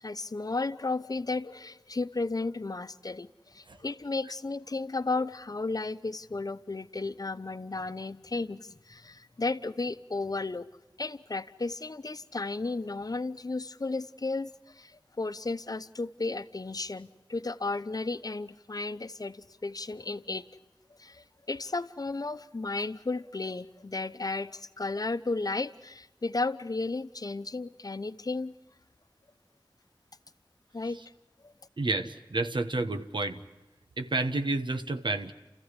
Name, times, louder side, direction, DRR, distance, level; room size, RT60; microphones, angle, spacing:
voice 1, 0.0-10.7 11.0-20.5 21.0-28.5 30.7-31.0 31.4-31.5, left 3 dB, 50° left, 12 dB, 0.8 m, -34 dB
voice 2, 31.8-33.4 34.0-35.3, right 2 dB, 75° right, 8 dB, 1.3 m, -30 dB
30.0 x 14.5 x 9.8 m, 1.1 s
wide cardioid pair, 50°, 8 cm